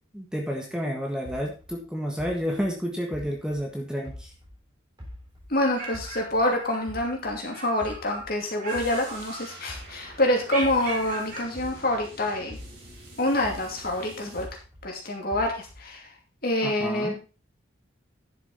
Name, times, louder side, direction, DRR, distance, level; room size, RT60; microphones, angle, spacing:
voice 1, 0.1-4.3 16.6-17.2, equal, 5° right, 0 dB, 1.6 m, -30 dB
sound 1, 1.2-4.6 5.0-7.4 7.8-12.1 12.5-14.9 15.3-16.0, left 1 dB, 20° right, 3.7 m, -44 dB
voice 2, 5.5-12.6 13.2-14.5 14.8-16.1 16.4-17.2, left 1 dB, 45° left, 1 dB, 2.7 m, -26 dB
sound 2, 5.5-7.1 7.5-8.3 8.6-9.9 10.4-11.5, right 2 dB, 45° right, 4.0 m, -37 dB
sound 3, 8.7-14.5, right 2 dB, 60° right, 5.3 m, -47 dB
11.0 x 6.9 x 4.1 m, 0.34 s
head